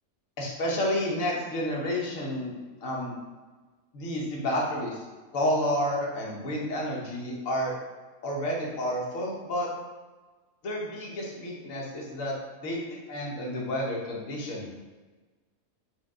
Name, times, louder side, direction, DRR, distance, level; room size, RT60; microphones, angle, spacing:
voice 1, 0.4-2.5 2.8-3.1 3.9-5.0 5.3-7.7 8.2-9.7 10.6-12.3 12.6-14.7, left 1 dB, 70° left, -3 dB, 1.3 m, -30 dB
4.5 x 2.2 x 3.6 m, 1.3 s
omnidirectional pair, 1.5 m